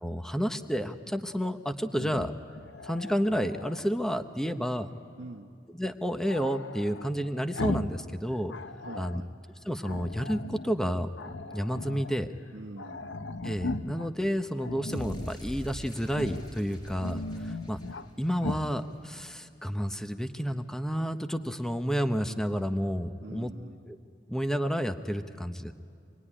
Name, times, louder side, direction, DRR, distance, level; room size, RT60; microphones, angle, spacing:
voice 1, 0.0-2.3 2.8-4.9 5.7-8.5 9.0-9.2 9.6-11.1 11.5-12.3 13.4-17.8 18.2-23.5 23.9-24.0 24.3-25.7, equal, 5° left, 8 dB, 0.7 m, -30 dB
Growling, 1.9-3.9 6.3-8.0 8.3-9.2 9.8-10.7 11.1-12.1 12.5-12.6 12.8-14.1 14.6-15.4 16.1-16.5 16.8-18.1 18.4-18.7, left 2 dB, 85° left, 0.8 m, -38 dB
voice 2, 5.2-5.6 8.8-9.3 12.5-13.1 23.2-23.9, right 2 dB, 80° right, 4 dB, 1.3 m, -44 dB
sound 1, 14.9-19.1, equal, 25° left, 5.1 m, -43 dB
25.5 x 21.0 x 9.9 m, 2.3 s
head